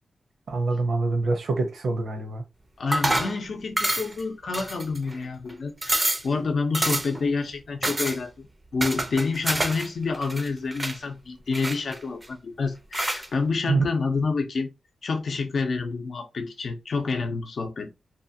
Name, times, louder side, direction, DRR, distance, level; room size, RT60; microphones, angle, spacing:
voice 1, 0.5-2.4 13.7-13.9, right 3 dB, 75° right, 0.7 m, -25 dB
voice 2, 2.8-8.5 8.7-14.7 15.0-18.0, left 4 dB, 60° left, 0.6 m, -28 dB
sound 1, 2.9-3.4 3.8-4.2 4.5-5.1 5.5-5.6 5.8-6.3 6.7-7.2 7.8-8.2 8.8-9.9 10.1-11.0 11.5-12.3 12.9-13.3, right 1 dB, 20° right, 0.5 m, -27 dB
2.9 x 2.3 x 2.7 m
wide cardioid pair, 115°, 0 cm